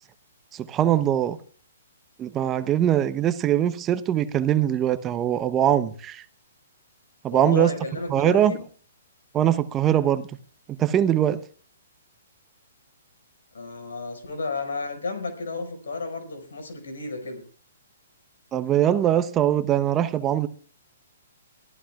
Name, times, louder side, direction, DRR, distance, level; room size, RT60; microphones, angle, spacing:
voice 1, 0.6-1.4 2.2-6.2 7.2-7.7 8.1-8.5 9.3-10.3 10.8-11.4 18.5-20.5, right 11 dB, 20° right, 0.8 m, -22 dB
voice 2, 7.3-8.6 13.5-17.4, left 3 dB, 75° left, 5.4 m, -32 dB
22.5 x 14.5 x 2.4 m
hypercardioid pair, 130°, 0 cm